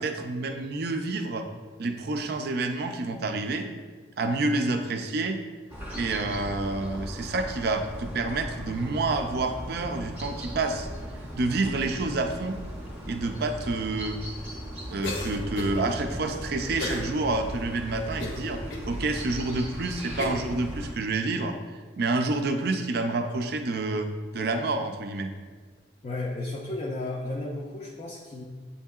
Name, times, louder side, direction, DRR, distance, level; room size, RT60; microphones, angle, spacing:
voice 1, 0.0-1.5 1.8-3.7 4.2-5.4 5.9-10.9 11.4-12.6 13.1-14.2 14.9-18.6 18.9-21.6 22.0-25.3, right 3 dB, 55° right, 6 dB, 0.4 m, -28 dB
sound 1, 5.7-20.9, equal, 10° right, 0.7 m, -38 dB
Cough, 15.0-15.8 16.8-17.1 17.6-17.7 18.2-18.9 19.5-19.6 20.2-20.5, left 2 dB, 85° left, 0.7 m, -33 dB
voice 2, 26.0-28.4, left 2 dB, 30° left, -3 dB, 0.4 m, -33 dB
7.7 x 2.7 x 2.3 m, 1.5 s
head